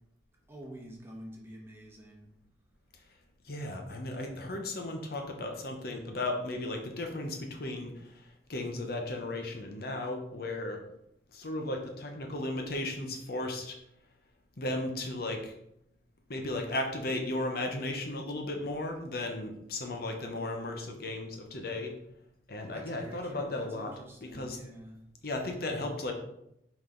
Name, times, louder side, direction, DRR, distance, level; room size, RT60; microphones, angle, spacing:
voice 1, 0.5-2.3 22.7-25.0, right 1 dB, 15° right, -1 dB, 1.2 m, -47 dB
voice 2, 3.4-10.8 11.3-13.8 14.6-15.5 16.3-21.9 22.5-23.9 24.2-24.6 25.2-26.1, left 2 dB, 60° left, 3 dB, 0.9 m, -35 dB
6.0 x 5.0 x 3.8 m, 0.79 s
head